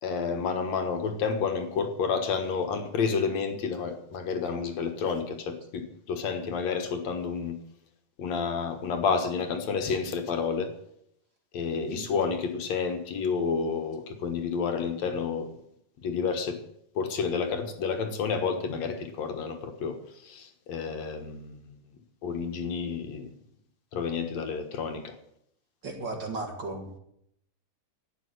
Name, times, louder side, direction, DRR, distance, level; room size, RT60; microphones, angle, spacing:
voice 1, 0.0-7.6 8.2-10.7 11.5-15.5 16.0-16.6 17.0-20.0 20.2-21.6 22.2-23.3 23.9-25.1, left 5 dB, 60° left, 6 dB, 2.5 m, -30 dB
voice 2, 25.8-27.0, right 3 dB, 40° right, 3 dB, 2.1 m, -35 dB
12.0 x 9.2 x 9.5 m, 0.74 s
omnidirectional pair, 3.7 m